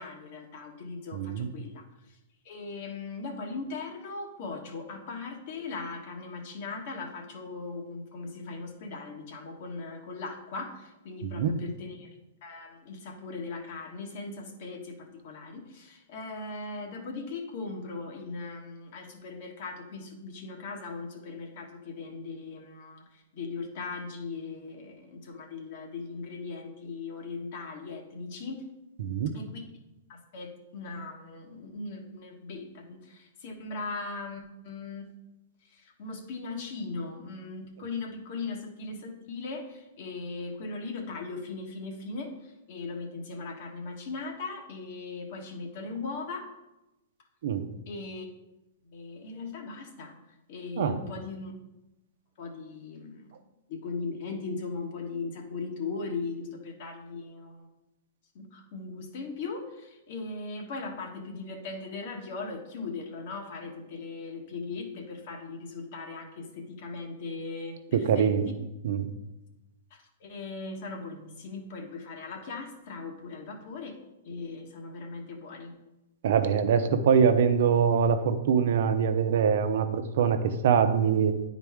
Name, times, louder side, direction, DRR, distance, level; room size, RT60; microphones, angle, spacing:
voice 1, 0.0-2.2 2.4-12.1 12.4-28.6 29.3-29.6 30.1-35.1 35.7-46.5 47.9-48.3 48.8-50.1 50.5-51.5 52.4-53.3 53.7-57.7 58.3-68.3 69.9-74.0 74.2-75.8, left 4 dB, 55° left, 3 dB, 1.3 m, -39 dB
voice 2, 1.1-1.5 11.2-11.5 29.0-29.3 47.4-47.7 50.8-51.0 67.9-68.5 68.8-69.1 76.2-81.3, right 7 dB, 65° right, 8 dB, 0.7 m, -24 dB
9.7 x 4.1 x 3.6 m, 0.98 s
hypercardioid pair, 125°, 0 cm